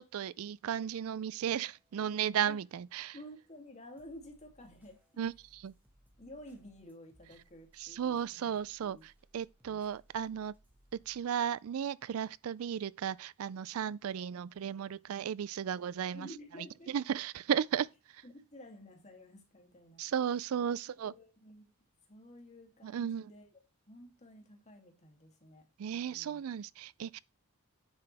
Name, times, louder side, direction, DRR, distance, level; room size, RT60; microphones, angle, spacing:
voice 1, 0.0-3.1 5.2-5.7 7.8-10.5 11.1-16.3 16.9-17.9 20.0-21.1 22.8-23.3 25.8-27.2, right 8 dB, 70° right, 0.4 m, -35 dB
sound 1, 1.5-2.0 2.3-11.2, equal, 10° right, 1.8 m, -68 dB
voice 2, 3.1-5.0 6.2-9.0 9.7-9.9 16.1-16.9 18.2-20.1 20.6-20.8 21.0-21.6 22.1-23.5 23.9-26.4, left 1 dB, 35° left, 2.7 m, -52 dB
9.8 x 7.6 x 3.4 m
head